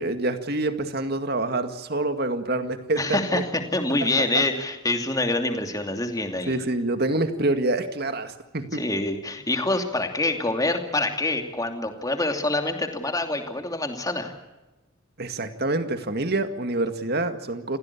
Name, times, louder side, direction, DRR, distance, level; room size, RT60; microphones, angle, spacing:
voice 1, 0.0-3.4 4.3-4.4 6.5-8.8 15.2-17.8, right 2 dB, 50° right, 8 dB, 2.1 m, -26 dB
voice 2, 2.9-6.6 8.7-14.3, left 2 dB, 20° left, 5 dB, 2.8 m, -26 dB
28.5 x 16.5 x 8.5 m, 1.0 s
head